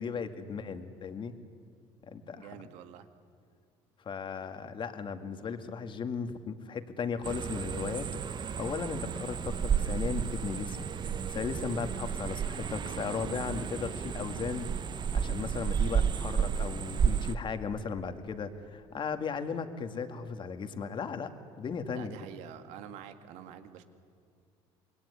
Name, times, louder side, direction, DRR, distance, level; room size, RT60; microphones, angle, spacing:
voice 1, 0.0-1.3 2.1-2.6 4.0-8.1 8.6-10.9 11.3-14.7 15.1-21.3 21.6-22.1, left 5 dB, 45° left, 8 dB, 2.2 m, -36 dB
voice 2, 2.3-3.1 21.9-23.8, right 10 dB, 80° right, 8 dB, 2.0 m, -47 dB
sound 1, 7.2-17.4, right 7 dB, 40° right, 1.0 m, -32 dB
27.0 x 21.0 x 9.9 m, 2.2 s
supercardioid pair, 85°, 12 cm